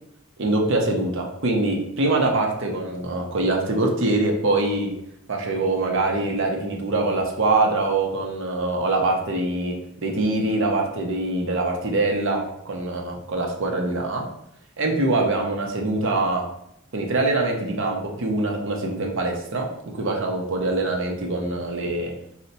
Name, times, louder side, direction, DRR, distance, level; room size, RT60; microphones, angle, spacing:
voice 1, 0.4-4.9 5.3-14.2 14.8-16.5 16.9-19.7 19.9-22.1, right 2 dB, 65° right, 1 dB, 0.6 m, -24 dB
2.7 x 2.1 x 4.0 m, 0.74 s
head